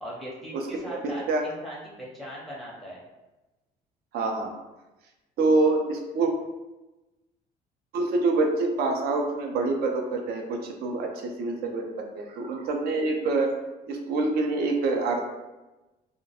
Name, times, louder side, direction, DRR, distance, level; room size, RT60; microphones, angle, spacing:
voice 1, 0.0-3.0, equal, ahead, -6 dB, 0.6 m, -39 dB
voice 2, 0.5-1.0 1.3-1.5 4.1-4.5 5.4-6.3 7.9-13.5 13.9-15.2, right 3 dB, 65° right, 3 dB, 0.5 m, -26 dB
2.3 x 2.1 x 2.8 m, 1.1 s
cardioid pair, 110°, 17 cm